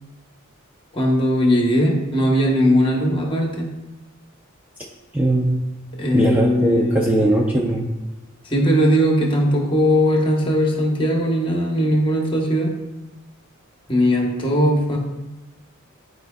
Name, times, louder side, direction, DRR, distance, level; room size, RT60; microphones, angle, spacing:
voice 1, 0.9-3.7 6.0-7.1 8.4-12.7 13.9-15.0, equal, 25° left, 0 dB, 1.0 m, -19 dB
voice 2, 5.1-5.6 6.1-7.9, right 1 dB, 5° right, -1 dB, 0.4 m, -19 dB
11.0 x 4.5 x 2.3 m, 1.0 s
head